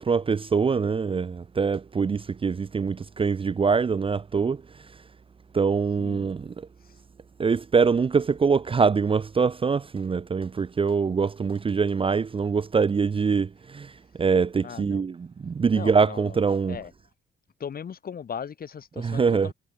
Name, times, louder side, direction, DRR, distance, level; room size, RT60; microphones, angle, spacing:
voice 1, 0.0-4.6 5.5-6.7 7.4-13.9 14.2-16.8 19.0-19.5, right 5 dB, 25° right, 0.6 m, -24 dB
voice 2, 14.6-15.0 15.7-16.9 17.6-19.5, left 7 dB, 50° left, 2.4 m, -38 dB
cardioid pair, 90°, 20 cm